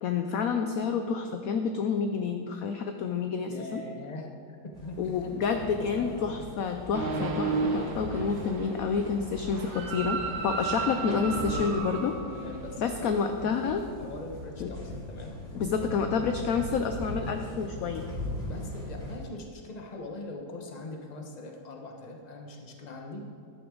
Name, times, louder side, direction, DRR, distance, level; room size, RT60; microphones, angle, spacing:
voice 1, 0.0-3.8 5.0-12.2 12.8-13.8 14.6-14.7 15.5-18.0, left 6 dB, 70° left, 6 dB, 0.8 m, -29 dB
voice 2, 3.5-4.3 4.8-6.5 12.3-16.0 18.5-23.2, left 2 dB, 25° left, 2 dB, 1.0 m, -42 dB
sound 1, 4.7-19.2, left 1 dB, 20° right, 3.5 m, -41 dB
sound 2, 6.9-13.0, right 4 dB, 75° right, 1.8 m, -33 dB
14.0 x 10.5 x 3.9 m, 2.6 s
omnidirectional pair, 2.1 m